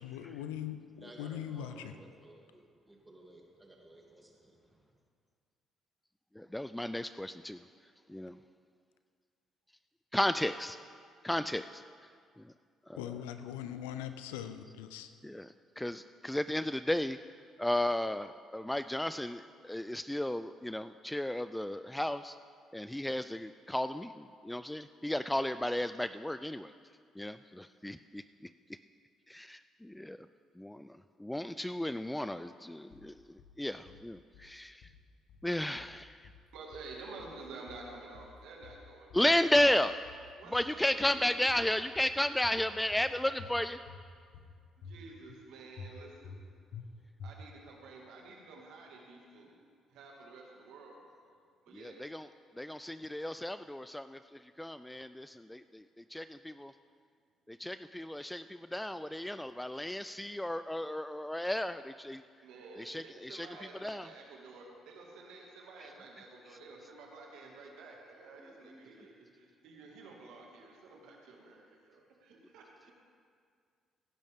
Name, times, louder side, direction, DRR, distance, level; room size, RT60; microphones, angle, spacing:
voice 1, 0.0-2.0 13.0-15.1, left 10 dB, 90° left, 10 dB, 0.5 m, -41 dB
voice 2, 1.0-4.9, right 1 dB, 20° right, -1 dB, 2.8 m, -56 dB
voice 3, 6.4-7.6 8.1-8.4 10.1-10.8 11.2-11.8 12.4-12.5 12.9-13.0 15.2-17.2 17.6-22.4 22.7-26.7 27.2-28.2 29.3-30.2 30.6-33.2 33.6-34.9 35.4-36.3 39.1-40.0 40.5-43.8 51.7-52.3 52.6-56.7 57.5-62.2 62.8-63.5 63.8-64.1, left 1 dB, 10° left, 12 dB, 0.3 m, -34 dB
sound 1, 32.9-33.5 33.9-34.5 34.8-35.5 35.8-36.5 36.7-37.4 37.7-38.4 38.6-39.3 39.6-40.3 40.5-41.2 41.5-42.1 42.4-43.1 43.4-44.0 44.3-45.0 45.3-45.4 45.8-46.4 46.7-46.9 47.2-47.7, left 4 dB, 70° left, 1.2 m, -50 dB
voice 4, 36.5-39.3 40.4-41.9 44.8-46.4 47.2-49.5 49.9-51.0 51.7-52.2 62.4-72.9, right 3 dB, 75° right, -1 dB, 2.1 m, -51 dB
17.0 x 10.5 x 3.6 m, 2.1 s
hypercardioid pair, 55°, 0 cm